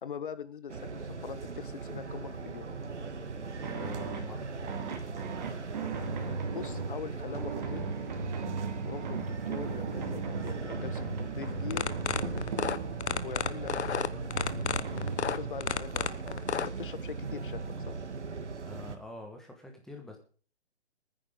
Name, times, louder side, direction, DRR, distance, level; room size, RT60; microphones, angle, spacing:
voice 1, 0.0-2.7 6.5-7.9 8.8-11.9 13.2-14.3 15.1-16.1 16.6-18.0, left 7 dB, 50° left, 13 dB, 1.4 m, -42 dB
sound 1, 0.7-19.0, right 4 dB, 90° right, 2.2 m, -40 dB
sound 2, 2.7-15.5, right 4 dB, 40° right, 2.7 m, -37 dB
voice 2, 3.7-4.4 18.6-20.2, left 3 dB, ahead, 2 dB, 1.3 m, -45 dB
sound 3, 11.6-16.7, left 7 dB, 75° left, 1.2 m, -31 dB
21.0 x 9.8 x 3.7 m, 0.40 s
hypercardioid pair, 165°, 34 cm